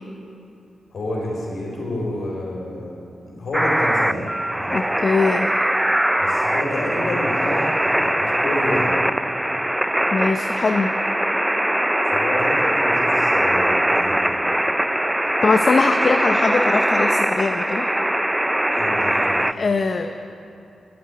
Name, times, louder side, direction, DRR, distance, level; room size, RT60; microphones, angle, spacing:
voice 1, 0.9-2.9 3.2-4.3 4.5-4.8 6.2-9.0 12.1-14.3 18.7-19.5, left 1 dB, 70° left, -2 dB, 4.1 m, -29 dB
sound 1, 3.5-19.5, right 1 dB, 10° right, 0.4 m, -21 dB
voice 2, 4.7-5.5 10.1-10.9 15.4-17.9 19.6-20.1, left 4 dB, 55° left, 6 dB, 0.6 m, -21 dB
11.5 x 8.7 x 9.3 m, 2.7 s
cardioid pair, 55°, 0 cm